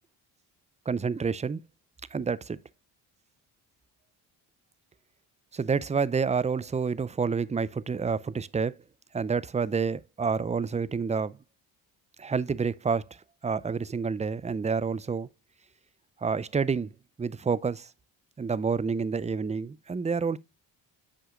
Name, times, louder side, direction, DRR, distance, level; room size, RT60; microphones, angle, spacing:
voice 1, 0.9-1.6 2.1-2.6 5.5-8.7 9.1-11.4 12.2-13.0 13.4-15.3 16.2-16.9 17.2-17.9 18.4-20.4, right 5 dB, 15° right, 0.4 m, -28 dB
9.6 x 6.1 x 2.3 m
supercardioid pair, 55°, 49 cm